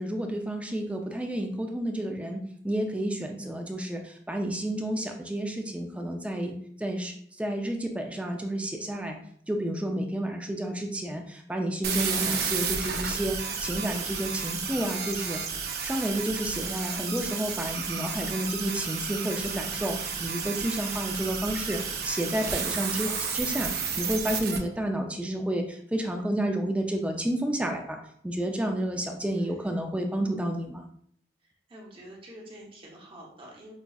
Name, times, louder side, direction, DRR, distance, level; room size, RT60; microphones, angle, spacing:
voice 1, 0.0-7.1 7.4-9.2 9.5-15.4 15.8-23.7 24.0-28.0 28.2-30.8, right 1 dB, 5° right, 3 dB, 0.3 m, -30 dB
sound 1, 11.8-24.6, right 6 dB, 60° right, 0.5 m, -32 dB
voice 2, 29.3-29.7 31.4-33.7, right 1 dB, 30° right, -3 dB, 0.8 m, -48 dB
5.1 x 2.3 x 2.3 m, 0.64 s
head